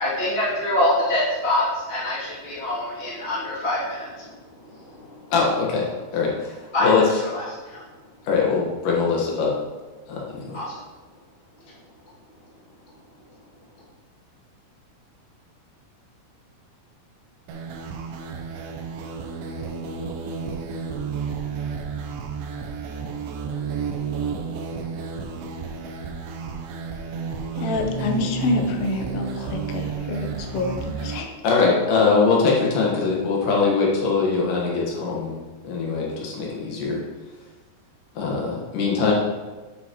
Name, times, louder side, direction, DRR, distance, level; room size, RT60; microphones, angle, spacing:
voice 1, 0.0-5.3 6.7-6.9 7.2-7.9 10.5-10.8 11.6-11.7, left 1 dB, 20° left, -8 dB, 1.7 m, -26 dB
voice 2, 5.3-5.9 6.1-7.0 8.2-9.5 10.1-10.6 31.4-37.0 38.2-39.1, left 4 dB, 60° left, -2 dB, 2.3 m, -22 dB
sound 1, 17.5-31.2, right 5 dB, 90° right, 2.2 m, -31 dB
voice 3, 27.5-31.3 31.6-31.7, left 2 dB, 90° left, 3 dB, 3.5 m, -27 dB
9.3 x 7.2 x 3.1 m, 1.3 s
omnidirectional pair, 5.5 m